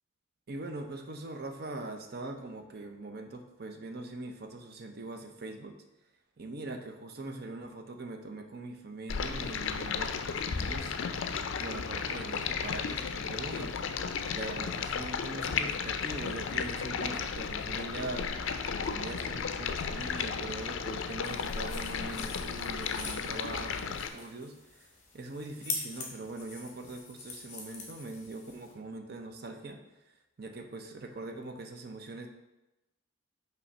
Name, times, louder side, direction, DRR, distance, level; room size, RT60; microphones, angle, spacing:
voice 1, 0.5-5.7 6.4-11.0 11.2-11.3 11.6-13.8 14.3-18.4 18.8-24.9 25.1-29.8 30.4-32.3, right 2 dB, 50° right, 5 dB, 0.6 m, -42 dB
Stream, 9.1-24.1, left 6 dB, 70° left, 0.4 m, -34 dB
sound 1, 21.2-28.7, left 3 dB, 35° left, 1.3 m, -44 dB
5.6 x 3.1 x 5.3 m, 0.97 s
head